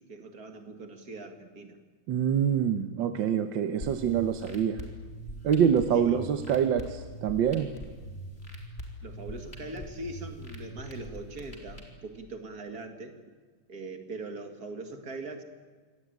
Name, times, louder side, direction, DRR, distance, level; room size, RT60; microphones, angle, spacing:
voice 1, 0.0-1.8 5.9-6.2 9.0-13.2 13.7-15.4, right 2 dB, 45° right, 5 dB, 2.6 m, -41 dB
voice 2, 2.1-4.8 5.4-7.7, right 8 dB, 70° right, 7 dB, 1.6 m, -26 dB
sound 1, 3.8-11.8, right 1 dB, 30° left, 3.9 m, -42 dB
25.5 x 18.0 x 9.3 m, 1.5 s
omnidirectional pair, 2.3 m